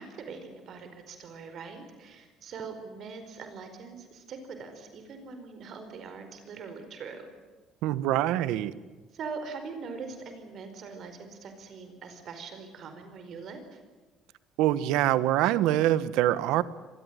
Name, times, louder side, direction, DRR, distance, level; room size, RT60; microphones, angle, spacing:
voice 1, 0.0-7.3 9.1-13.8, right 5 dB, 50° right, 7 dB, 4.7 m, -42 dB
voice 2, 7.8-8.7 14.6-16.6, right 13 dB, 85° right, 15 dB, 1.3 m, -24 dB
25.0 x 20.0 x 9.3 m, 1.3 s
cardioid pair, 140°, 0 cm